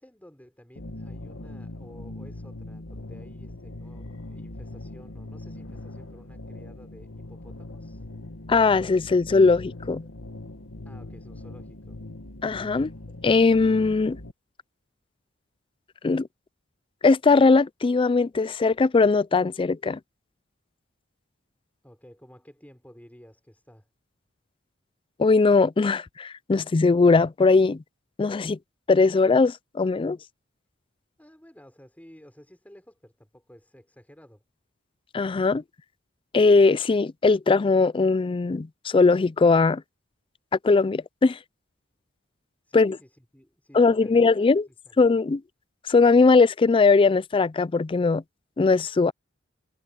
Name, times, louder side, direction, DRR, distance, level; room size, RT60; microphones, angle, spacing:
voice 1, 0.0-8.1 10.8-12.0 21.8-23.9 31.2-34.4 42.6-45.1, equal, 10° left, 5.4 m, -52 dB
sound 1, 0.8-14.3, left 2 dB, 90° left, 1.9 m, -41 dB
voice 2, 8.5-10.0 12.4-12.9 13.2-14.2 16.0-16.3 17.0-20.0 25.2-27.8 28.2-28.6 28.9-30.2 35.1-35.6 36.3-39.8 40.6-41.4 42.7-43.0 43.7-44.6 45.0-45.4 45.9-48.2 48.6-49.1, left 4 dB, 25° left, 0.4 m, -20 dB
head